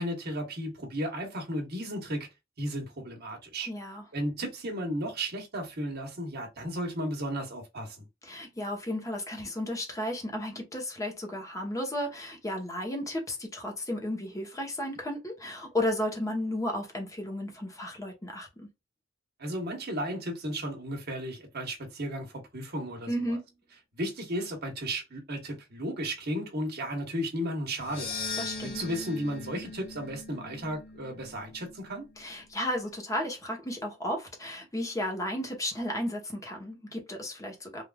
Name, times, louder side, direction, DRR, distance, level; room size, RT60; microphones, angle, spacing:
voice 1, 0.0-2.3 2.6-3.7 4.1-8.0 19.4-23.4 24.0-28.1 28.6-32.0, equal, 55° right, 1.1 m, -34 dB
voice 2, 3.7-4.0 8.2-18.7 23.1-23.4 28.4-28.8 32.2-37.8, left 1 dB, 15° left, 0.9 m, -33 dB
sound 1, 27.8-32.1, left 4 dB, 50° left, 1.0 m, -40 dB
3.3 x 2.5 x 2.2 m
head